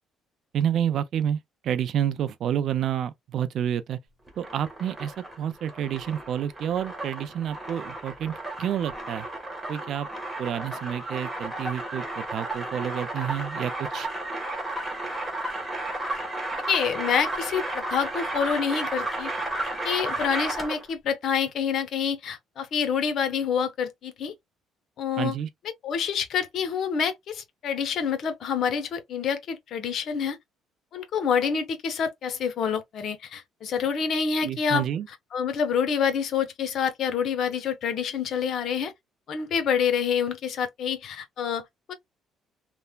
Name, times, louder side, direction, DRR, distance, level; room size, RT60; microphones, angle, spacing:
voice 1, 0.5-4.0 4.4-9.3 9.7-10.1 10.4-14.1 25.2-25.5 34.4-35.1, right 9 dB, 60° right, 0.4 m, -29 dB
sound 1, 4.3-20.9, right 1 dB, 10° right, 1.2 m, -33 dB
voice 2, 16.7-19.3 19.8-24.3 25.0-25.3 25.8-30.4 30.9-34.8 35.3-38.9 39.3-41.9, left 7 dB, 60° left, 0.8 m, -27 dB
3.1 x 2.1 x 2.2 m
cardioid pair, 100°, 0 cm